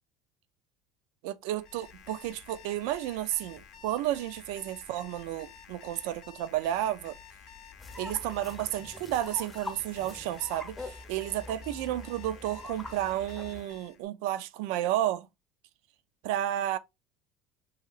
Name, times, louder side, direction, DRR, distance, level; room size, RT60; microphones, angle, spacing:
voice 1, 1.2-7.2 8.0-15.3 16.2-16.8, right 13 dB, 80° right, 0.3 m, -32 dB
Alarm, 1.5-14.0, left 8 dB, 55° left, 0.6 m, -51 dB
sound 1, 7.8-13.6, left 2 dB, 15° left, 0.7 m, -44 dB
2.8 x 2.8 x 2.4 m
cardioid pair, 125°, 0 cm